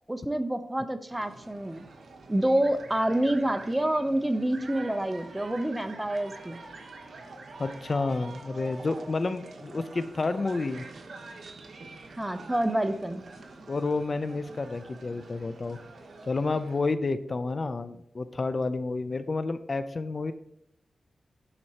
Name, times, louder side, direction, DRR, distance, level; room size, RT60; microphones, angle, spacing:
voice 1, 0.1-1.9 2.3-6.6 12.2-13.2, right 1 dB, 15° right, 9 dB, 0.7 m, -27 dB
sound 1, 1.1-16.8, right 3 dB, 75° right, 0.9 m, -46 dB
voice 2, 7.6-10.8 13.7-15.8 16.2-20.3, left 3 dB, 45° left, 12 dB, 0.4 m, -30 dB
11.0 x 4.3 x 2.8 m, 0.72 s
cardioid pair, 65°, 0 cm